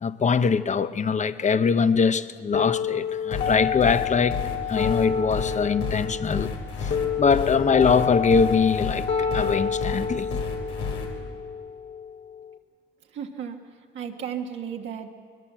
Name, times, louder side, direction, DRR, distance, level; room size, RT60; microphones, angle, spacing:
voice 1, 0.0-4.4 4.7-6.5 6.8-10.4, left 5 dB, 35° left, 0.9 m, -23 dB
sound 1, 2.5-12.5, left 6 dB, 70° left, 2.6 m, -29 dB
sound 2, 3.3-11.1, left 5 dB, 90° left, 3.8 m, -31 dB
voice 2, 13.1-13.6 13.9-15.1, right 8 dB, 70° right, 1.5 m, -34 dB
21.0 x 20.5 x 7.5 m
cardioid pair, 90°, 20 cm